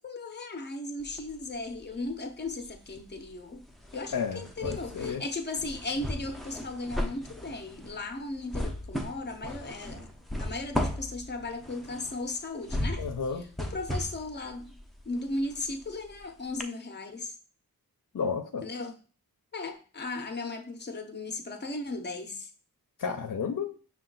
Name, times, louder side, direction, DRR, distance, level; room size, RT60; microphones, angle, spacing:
voice 1, 0.0-3.7 3.9-10.1 10.4-13.0 13.4-14.7 15.1-17.3 18.6-19.0 19.5-22.5, left 2 dB, 30° left, 0.8 m, -36 dB
sound 1, 1.0-2.1 2.4-16.2 16.6-16.7, left 1 dB, ahead, 0.7 m, -36 dB
voice 2, 3.9-5.2 13.0-13.4 18.1-18.6 23.0-23.7, left 6 dB, 60° left, 0.6 m, -32 dB
5.5 x 2.4 x 3.8 m
cardioid pair, 45°, 35 cm